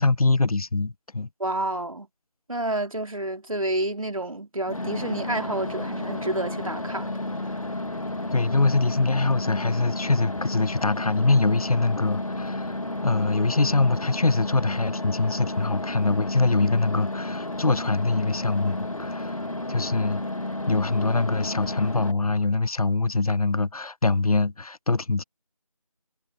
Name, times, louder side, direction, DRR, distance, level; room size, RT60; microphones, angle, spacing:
voice 1, 0.0-1.3 8.3-12.8 13.0-19.4 19.7-20.2 20.7-25.2, left 3 dB, 90° left, 0.7 m, -23 dB
voice 2, 1.4-2.1 2.5-7.2, right 1 dB, 70° right, 2.9 m, -29 dB
sound 1, 4.7-22.1, left 2 dB, 70° left, 2.2 m, -32 dB
figure-of-eight pair, 170°, 18 cm